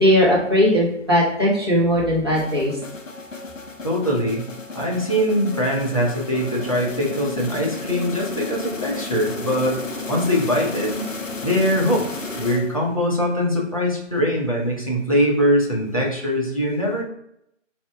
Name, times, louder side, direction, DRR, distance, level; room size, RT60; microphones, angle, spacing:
voice 1, 0.0-2.8, equal, 20° right, -6 dB, 0.8 m, -18 dB
sound 1, 2.3-13.0, left 3 dB, 90° left, 0.8 m, -33 dB
voice 2, 3.8-4.4 4.7-11.0 11.4-12.1 12.4-17.0, equal, 30° left, -3 dB, 0.7 m, -22 dB
4.3 x 2.2 x 3.4 m, 0.76 s
figure-of-eight pair, 160°, 38 cm